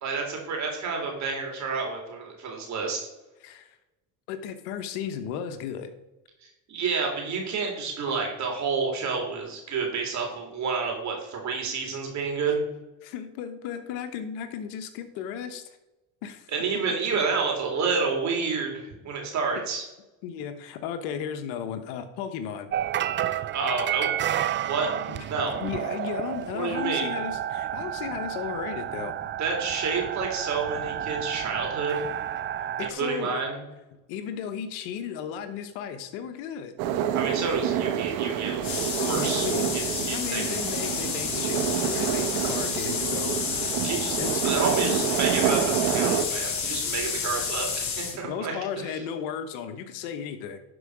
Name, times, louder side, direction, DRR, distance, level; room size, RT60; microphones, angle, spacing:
voice 1, 0.0-3.1 6.4-12.6 16.5-19.8 23.5-24.1 24.7-24.9 25.3-25.6 26.5-27.1 29.4-32.0 32.8-33.6 37.1-40.6 43.8-44.2 44.4-49.0, right 5 dB, 50° right, 1 dB, 3.4 m, -29 dB
voice 2, 4.3-5.9 13.0-15.6 16.2-16.5 20.2-22.7 25.1-25.3 25.6-29.1 32.8-33.4 33.9-36.7 39.0-43.4 44.2-45.0 48.2-50.6, left 8 dB, 85° left, 9 dB, 1.2 m, -35 dB
sound 1, 22.7-32.9, right 11 dB, 35° right, 0.4 m, -31 dB
sound 2, 36.8-46.2, right 9 dB, 75° right, 1.0 m, -28 dB
sound 3, 38.6-48.2, left 6 dB, 50° left, 2.8 m, -30 dB
11.5 x 4.9 x 4.9 m, 1.0 s
supercardioid pair, 100°, 35 cm